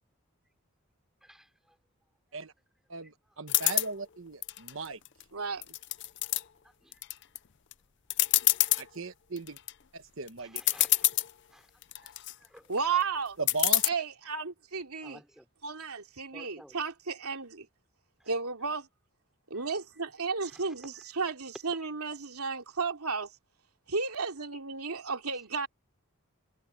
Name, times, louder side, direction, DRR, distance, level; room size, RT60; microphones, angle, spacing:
voice 1, 1.2-1.8 3.0-3.4 6.6-7.0 10.4-11.1 11.5-12.7 15.0-15.5 16.3-16.8 18.2-18.3 19.5-19.7 20.4-21.0, equal, ahead, 4.0 m, -56 dB
voice 2, 2.9-5.0 8.8-9.6 9.9-10.6 13.4-13.9, right 3 dB, 60° right, 1.2 m, -37 dB
sound 1, 3.5-3.9 4.4-5.2 5.6-6.4 6.9-7.4 7.7-7.8 8.1-8.8 9.4-9.7 10.3-10.4 10.6-11.3 11.8-12.3 13.5-13.9, left 17 dB, 55° left, 0.6 m, -26 dB
voice 3, 5.3-5.6 12.7-13.4 13.8-15.2 15.6-17.7 18.3-18.9 19.5-23.3 23.9-25.7, right 5 dB, 85° right, 2.9 m, -33 dB
head